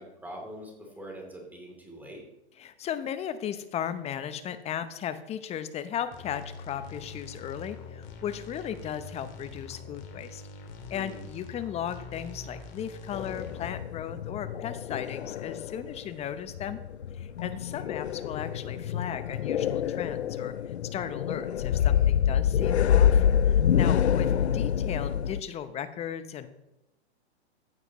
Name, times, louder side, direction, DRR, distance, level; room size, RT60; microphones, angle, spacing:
voice 1, 0.0-2.2 10.9-11.2, right 1 dB, 5° right, -1 dB, 3.1 m, -43 dB
voice 2, 2.6-10.4 10.9-16.8 17.1-20.5 20.9-26.5, left 9 dB, 20° left, 11 dB, 0.8 m, -36 dB
sound 1, 6.1-13.8, left 4 dB, 35° left, 2.3 m, -44 dB
sound 2, 13.1-16.0 16.3-25.4, left 9 dB, 70° left, 0.6 m, -26 dB
15.0 x 10.5 x 3.1 m, 0.87 s
hypercardioid pair, 115°, 34 cm